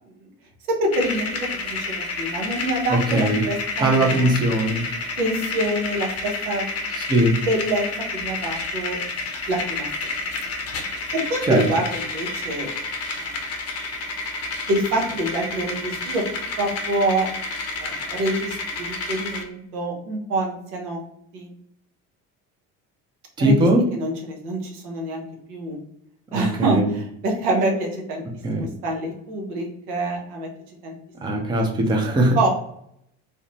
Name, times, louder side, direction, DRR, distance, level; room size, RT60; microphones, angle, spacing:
voice 1, 0.7-4.4 5.2-6.6 7.3-7.8 8.1-9.0 9.5-9.9 11.1-12.7 13.2-13.4 14.7-16.2 16.6-17.3 17.8-21.0 21.3-21.5 23.4-23.6 23.9-25.2 25.5-25.8 26.3-28.2 28.6-30.5 30.8-30.9 31.3-31.7 32.3-32.5, right 1 dB, 75° right, 1 dB, 0.7 m, -26 dB
sound 1, 0.9-19.4, left 3 dB, 35° left, 0.6 m, -30 dB
voice 2, 2.9-3.4 3.8-4.8 7.1-7.4 11.5-11.7 23.4-23.8 26.3-26.9 28.4-28.7 31.2-32.4, right 1 dB, 10° right, 1 dB, 0.5 m, -20 dB
2.5 x 2.0 x 2.8 m, 0.71 s
figure-of-eight pair, 55°, 46 cm